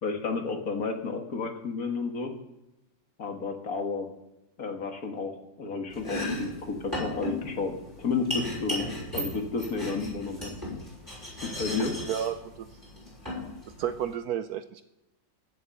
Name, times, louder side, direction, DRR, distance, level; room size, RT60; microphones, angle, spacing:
voice 1, 0.0-2.3 3.2-4.1 4.6-7.7 8.0-8.9 9.1-10.5 11.4-11.9, left 4 dB, 55° left, 4 dB, 2.0 m, -31 dB
Domestic sounds home sounds, 5.9-14.1, left 1 dB, 10° right, 5.9 m, -36 dB
voice 2, 12.1-12.7 13.8-14.8, right 9 dB, 70° right, 11 dB, 1.0 m, -31 dB
15.5 x 7.7 x 6.6 m, 0.95 s
omnidirectional pair, 1.9 m